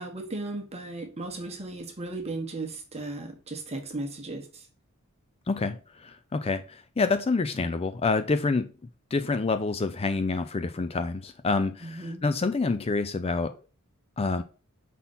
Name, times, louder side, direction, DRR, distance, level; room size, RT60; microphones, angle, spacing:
voice 1, 0.0-4.6 11.8-12.3, right 2 dB, 30° right, 1.4 m, -36 dB
voice 2, 5.5-8.7 9.1-13.5 14.2-14.4, left 3 dB, 25° left, 0.4 m, -27 dB
5.5 x 4.2 x 5.5 m
head